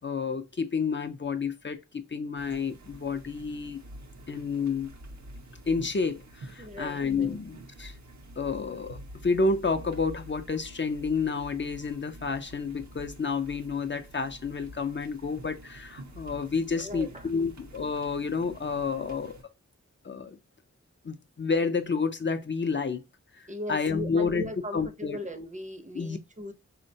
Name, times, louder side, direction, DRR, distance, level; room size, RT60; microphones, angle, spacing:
voice 1, 0.0-3.8 4.3-4.9 5.7-7.9 8.4-19.4 20.0-20.4 21.0-23.0 23.3-25.2 25.9-26.2, left 4 dB, 40° left, 0.4 m, -30 dB
sound 1, 2.4-19.4, right 1 dB, 70° right, 0.7 m, -47 dB
voice 2, 6.6-7.4 16.8-17.3 23.5-26.5, equal, 25° right, 0.6 m, -38 dB
3.6 x 2.1 x 2.6 m
wide cardioid pair, 45°, 29 cm